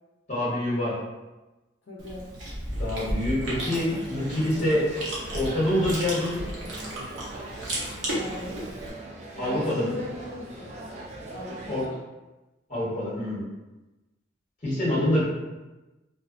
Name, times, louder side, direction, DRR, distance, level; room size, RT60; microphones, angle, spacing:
voice 1, 0.3-1.0 2.7-4.8 5.3-6.4 9.4-9.9 11.7-11.8 12.7-13.4 14.6-15.2, left 1 dB, 35° left, -8 dB, 1.0 m, -26 dB
voice 2, 1.9-2.4 8.1-8.7 9.3-10.8 11.3-12.0, left 2 dB, 70° left, -6 dB, 0.5 m, -38 dB
Chewing mastication, 2.0-8.9, right 1 dB, 80° right, 0.7 m, -34 dB
sound 1, 3.4-11.9, right 1 dB, 35° right, 0.3 m, -41 dB
2.5 x 2.2 x 2.4 m, 1.1 s
head